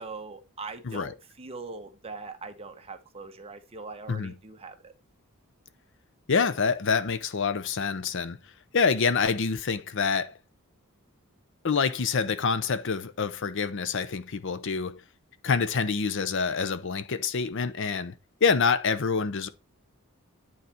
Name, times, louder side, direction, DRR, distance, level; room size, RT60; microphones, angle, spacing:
voice 1, 0.0-4.9, right 4 dB, 25° right, 0.9 m, -41 dB
voice 2, 6.3-8.4 8.7-10.4 11.6-15.0 15.4-18.1 18.4-19.5, left 5 dB, 60° left, 0.6 m, -26 dB
9.4 x 4.0 x 4.4 m
head